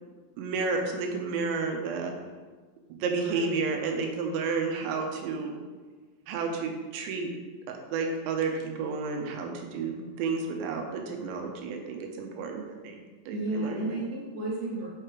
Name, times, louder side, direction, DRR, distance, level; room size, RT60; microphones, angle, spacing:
voice 1, 0.4-2.1 2.9-5.5 6.3-7.3 7.7-13.9, right 4 dB, 90° right, 2 dB, 3.0 m, -31 dB
voice 2, 3.2-3.6 13.3-14.9, right 2 dB, 70° right, -8 dB, 0.8 m, -33 dB
6.6 x 6.5 x 3.1 m, 1.4 s
omnidirectional pair, 5.3 m